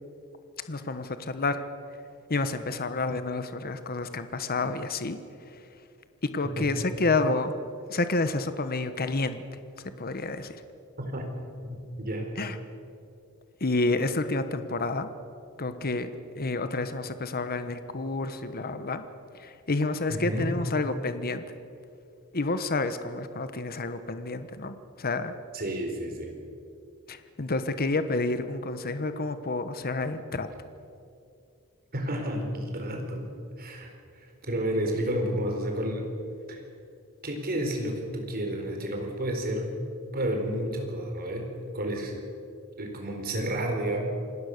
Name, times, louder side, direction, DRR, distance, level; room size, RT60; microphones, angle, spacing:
voice 1, 0.7-1.6 2.3-5.2 6.2-7.6 7.9-9.4 10.0-10.6 12.4-12.6 13.6-15.1 15.6-19.0 19.3-21.4 22.3-25.3 27.1-30.5, left 3 dB, 45° left, 10 dB, 1.1 m, -29 dB
voice 2, 11.0-11.3 11.6-12.3 20.1-20.5 25.5-26.3 31.9-33.2 33.6-36.1 36.5-36.6 37.2-39.7 40.1-42.2 42.8-44.0, right 1 dB, 45° right, 3 dB, 4.3 m, -31 dB
27.5 x 18.5 x 6.6 m, 2.5 s
head